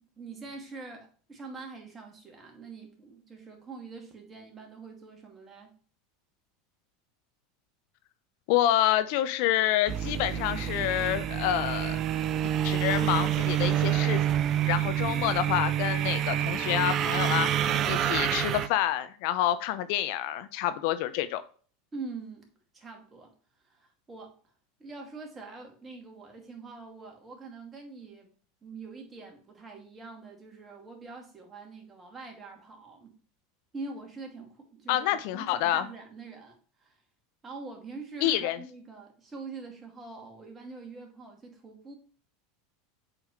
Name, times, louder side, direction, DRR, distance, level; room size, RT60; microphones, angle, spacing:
voice 1, 0.2-5.8 21.9-22.5 22.7-23.3 23.6-24.4 24.8-28.3 28.6-33.2 33.7-37.0 37.4-41.9, right 3 dB, 25° right, 2.4 m, -44 dB
voice 2, 8.5-12.0 12.6-14.2 14.7-17.5 17.9-21.4 34.9-35.9 38.2-38.6, left 13 dB, 60° left, 0.5 m, -27 dB
sound 1, 9.9-18.7, right 11 dB, 40° right, 0.6 m, -27 dB
7.6 x 4.7 x 3.2 m
hypercardioid pair, 85°, 0 cm